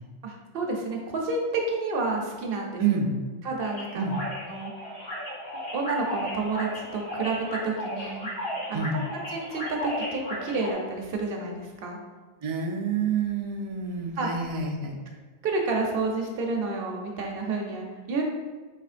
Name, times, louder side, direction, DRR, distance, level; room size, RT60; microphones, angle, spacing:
voice 1, 0.2-2.8 3.4-4.1 4.5-4.7 5.7-8.3 8.7-9.0 9.3-12.0 14.2-14.3 15.4-18.2, right 3 dB, 70° right, 0 dB, 0.8 m, -30 dB
voice 2, 2.8-3.2 4.0-4.2 8.7-9.0 12.4-15.0, right 5 dB, 55° right, 1 dB, 0.3 m, -28 dB
sound 1, 3.6-10.7, equal, 40° left, 1.1 m, -35 dB
4.2 x 3.0 x 2.4 m, 1.3 s
omnidirectional pair, 1.0 m